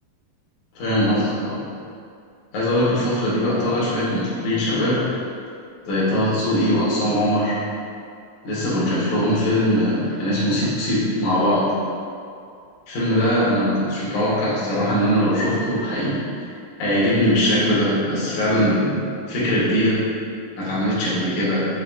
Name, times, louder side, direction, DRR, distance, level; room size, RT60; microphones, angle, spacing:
voice 1, 0.8-1.6 2.5-5.0 5.9-7.6 8.4-11.7 12.9-16.5 16.8-19.0 19.3-20.0 20.6-21.7, equal, 80° left, -8 dB, 2.3 m, -21 dB
6.0 x 2.1 x 2.3 m, 2.4 s
omnidirectional pair, 3.5 m